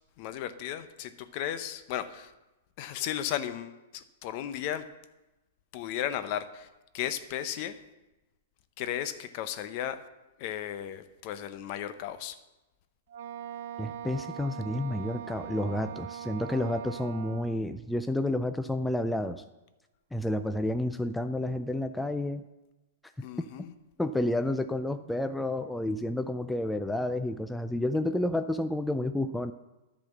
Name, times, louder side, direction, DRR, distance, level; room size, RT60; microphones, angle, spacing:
voice 1, 0.2-2.3 2.8-4.9 5.7-6.7 6.9-7.8 8.8-10.0 10.4-12.4 23.2-23.7, left 11 dB, 45° left, 11 dB, 0.7 m, -35 dB
Wind instrument woodwind instrument, 13.1-17.6, right 9 dB, 65° right, 0.4 m, -41 dB
voice 2, 13.8-19.4 20.1-22.4 23.2-23.3 24.0-29.5, left 1 dB, 5° left, 9 dB, 0.3 m, -30 dB
10.5 x 4.2 x 7.2 m, 1.1 s
hypercardioid pair, 130°, 0 cm